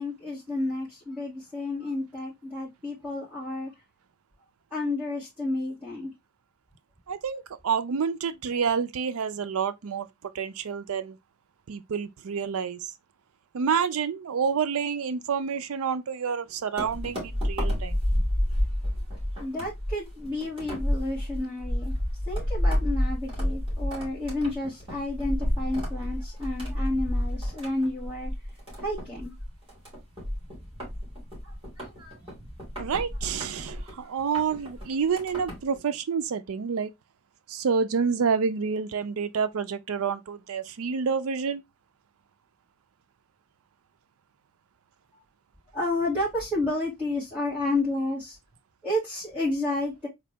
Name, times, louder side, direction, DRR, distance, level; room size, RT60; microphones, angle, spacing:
voice 1, 0.0-3.7 4.7-6.1 19.4-22.0 22.3-28.3 28.8-29.3 31.4-32.5 45.7-48.4 48.8-50.1, left 2 dB, 10° right, 2.3 m, -31 dB
voice 2, 7.1-11.2 11.7-12.9 13.5-18.0 32.8-36.9 37.5-41.6, right 6 dB, 65° right, 0.4 m, -28 dB
sound 1, 16.8-35.8, equal, 25° right, 2.4 m, -30 dB
3.9 x 2.6 x 3.3 m
head